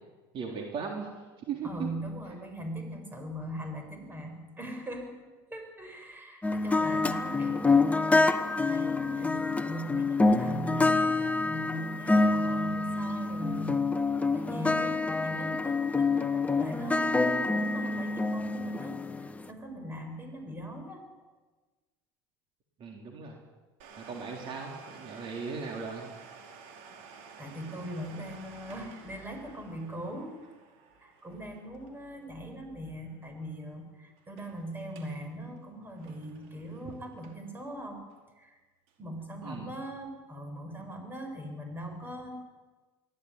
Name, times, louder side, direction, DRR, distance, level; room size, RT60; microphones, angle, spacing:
voice 1, 0.3-1.1 1.5-1.9 6.9-7.1 22.8-23.4 24.0-26.1 39.4-39.7, right 5 dB, 50° right, 1 dB, 3.9 m, -37 dB
voice 2, 1.6-5.1 5.5-8.3 8.7-13.8 14.3-19.0 19.5-21.0 27.4-30.4 31.0-38.0 38.4-38.6 39.0-42.4, equal, 15° right, 4 dB, 7.1 m, -40 dB
sound 1, 6.4-19.5, left 3 dB, 10° left, 1.1 m, -27 dB
Domestic sounds home sounds, 23.8-33.2 33.5-33.6 34.2-34.5 34.8-35.2 35.6-37.6 38.1-38.2 38.9-39.0, right 5 dB, 75° right, 4.9 m, -52 dB
23.0 x 16.5 x 9.9 m, 1.3 s
supercardioid pair, 115°, 12 cm